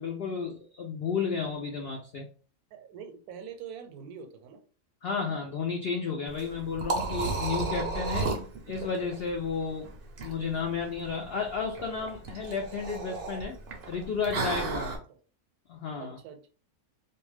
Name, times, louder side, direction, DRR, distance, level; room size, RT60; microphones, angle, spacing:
voice 1, 0.0-2.3 5.0-8.4 8.7-9.9 10.2-13.6 13.9-15.0 15.7-16.2, left 5 dB, 80° left, 1 dB, 0.5 m, -32 dB
voice 2, 2.7-4.6 14.9-15.2 16.0-16.5, right 7 dB, 85° right, 7 dB, 1.1 m, -44 dB
Liquid, 6.3-15.0, right 3 dB, 60° right, 0.6 m, -34 dB
2.5 x 2.2 x 3.2 m, 0.40 s
omnidirectional pair, 1.6 m